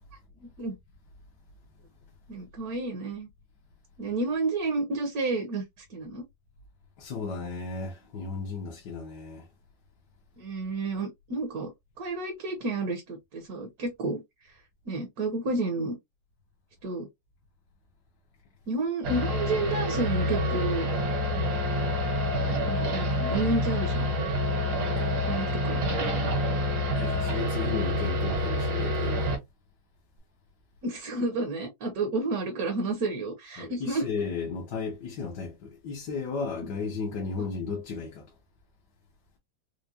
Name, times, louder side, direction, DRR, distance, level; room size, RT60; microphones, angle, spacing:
voice 1, 0.4-0.7 2.3-3.3 4.0-6.2 10.4-11.7 12.0-14.2 14.9-16.0 16.8-17.1 18.7-20.9 22.7-24.1 25.0-25.8 30.8-34.1, right 2 dB, 60° right, 1.2 m, -31 dB
voice 2, 7.0-9.5 27.0-29.4 33.6-38.3, left 5 dB, 65° left, 1.5 m, -34 dB
sound 1, 19.0-29.4, left 1 dB, 75° right, 1.9 m, -27 dB
4.8 x 2.2 x 2.6 m
omnidirectional pair, 2.0 m